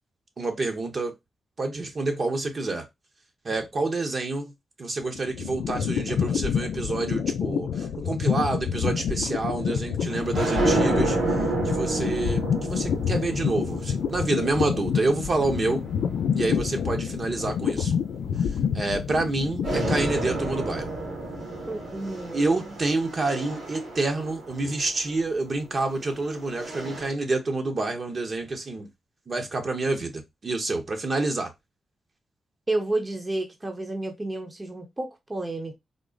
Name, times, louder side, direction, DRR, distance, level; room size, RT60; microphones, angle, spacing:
voice 1, 0.4-1.1 1.6-2.9 3.4-4.5 4.8-11.2 11.6-15.9 16.3-17.9 18.7-21.0 22.3-28.9 29.3-31.5, right 3 dB, 50° right, 1.0 m, -28 dB
sound 1, 5.0-20.4, left 7 dB, 85° left, 0.3 m, -28 dB
sound 2, 10.1-16.7 17.4-19.3 19.6-25.0 25.9-27.1, right 2 dB, 85° right, 2.1 m, -30 dB
voice 2, 21.7-22.8 32.7-35.7, right 2 dB, 20° right, 0.8 m, -31 dB
3.8 x 2.0 x 3.8 m
cardioid pair, 70°, 0 cm